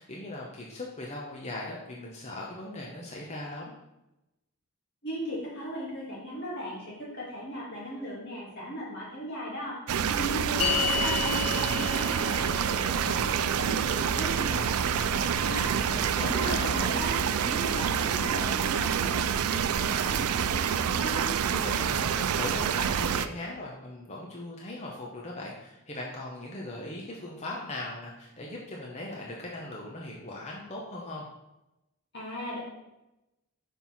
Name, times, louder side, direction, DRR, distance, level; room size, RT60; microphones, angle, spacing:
voice 1, 0.0-3.7 15.7-17.0 21.5-31.3, left 2 dB, 30° left, -3 dB, 0.9 m, -39 dB
voice 2, 5.0-21.4 32.1-32.6, equal, 50° left, -5 dB, 2.0 m, -37 dB
sound 1, 9.9-23.3, right 8 dB, 80° right, 0.4 m, -27 dB
sound 2, 10.6-17.1, left 10 dB, 85° left, 0.7 m, -36 dB
5.5 x 4.6 x 5.7 m, 0.93 s
head